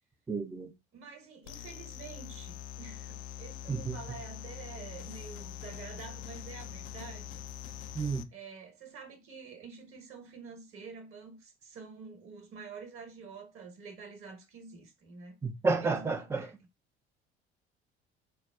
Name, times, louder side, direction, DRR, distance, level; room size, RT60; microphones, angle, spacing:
voice 1, 0.3-0.7 3.7-4.0 8.0-8.3 15.4-16.5, right 4 dB, 10° right, 0.4 m, -31 dB
voice 2, 0.9-7.4 7.7-15.4 15.8-16.5, right 5 dB, 45° right, 1.2 m, -48 dB
sound 1, 1.4-8.2, left 12 dB, 55° left, 0.4 m, -44 dB
5.3 x 2.1 x 2.3 m
figure-of-eight pair, 60°, 32 cm